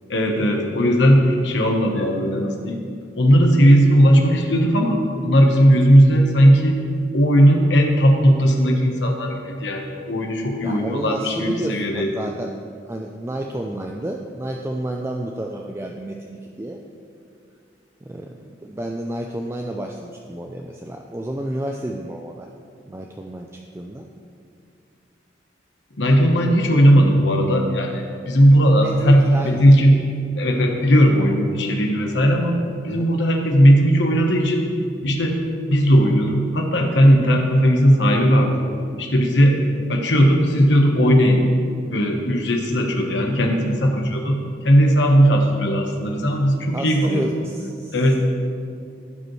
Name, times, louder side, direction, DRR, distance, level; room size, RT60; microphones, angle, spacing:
voice 1, 0.1-2.8 3.2-6.8 7.1-12.1 26.0-30.0 30.3-34.6 35.0-35.4 35.7-38.6 39.0-39.6 39.9-41.5 41.9-47.2 47.9-48.2, equal, 70° left, 2 dB, 1.1 m, -17 dB
voice 2, 10.6-12.6 12.9-16.8 18.0-22.5 22.9-24.1 28.8-29.8 32.9-33.1 46.7-48.2, right 1 dB, 15° right, 1 dB, 0.3 m, -31 dB
15.5 x 5.3 x 3.1 m, 2.4 s
head